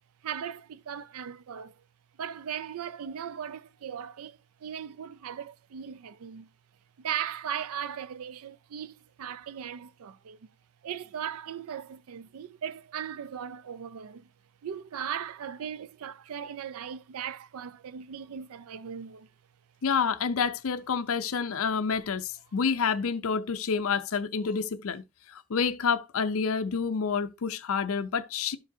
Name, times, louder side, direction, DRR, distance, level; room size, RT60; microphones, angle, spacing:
voice 1, 0.2-1.7 2.2-6.5 7.0-10.4 10.8-14.3 14.6-19.3, right 8 dB, 80° right, 0.4 m, -38 dB
voice 2, 19.8-25.0 25.3-28.6, left 6 dB, 70° left, 0.5 m, -28 dB
12.0 x 4.9 x 2.7 m
head